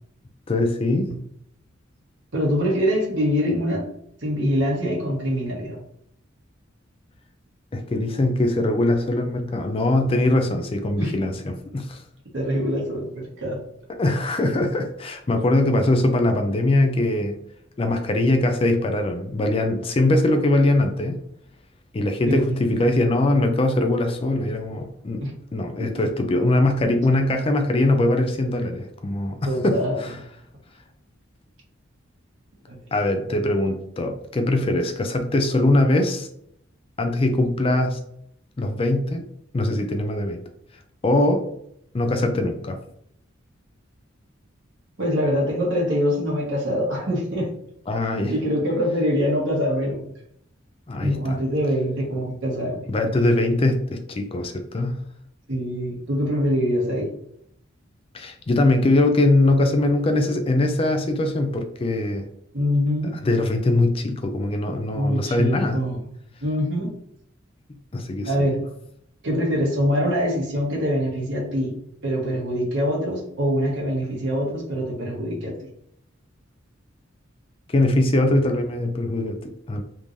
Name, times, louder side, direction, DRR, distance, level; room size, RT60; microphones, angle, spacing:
voice 1, 0.5-1.1 7.7-12.0 14.0-17.4 17.8-21.2 21.9-25.2 25.5-30.2 32.9-36.3 37.0-38.0 38.6-39.3 39.5-40.4 41.0-41.5 41.9-42.8 47.9-48.3 50.9-51.4 52.9-55.0 58.1-62.3 63.2-65.8 67.9-68.3 77.7-79.8, left 2 dB, 30° left, 5 dB, 0.4 m, -22 dB
voice 2, 2.3-3.9 4.2-5.8 11.0-11.1 12.3-13.6 22.2-22.8 25.2-25.3 29.4-30.0 32.7-32.8 45.0-47.5 48.3-50.1 51.0-52.9 55.5-57.1 62.5-63.1 64.9-66.0 66.4-66.9 68.2-68.6 69.2-71.8 72.0-75.5, equal, 65° right, -2 dB, 1.3 m, -24 dB
3.5 x 3.1 x 2.6 m, 0.71 s
head